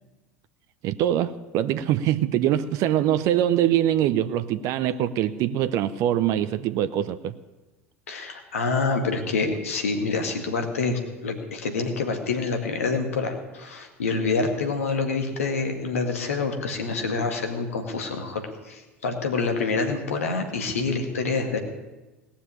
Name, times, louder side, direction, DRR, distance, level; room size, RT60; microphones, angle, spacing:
voice 1, 0.8-7.3, right 11 dB, 45° right, 0.6 m, -23 dB
voice 2, 8.1-21.6, left 4 dB, 70° left, 2.0 m, -27 dB
18.0 x 7.2 x 9.9 m
figure-of-eight pair, 75°, 8 cm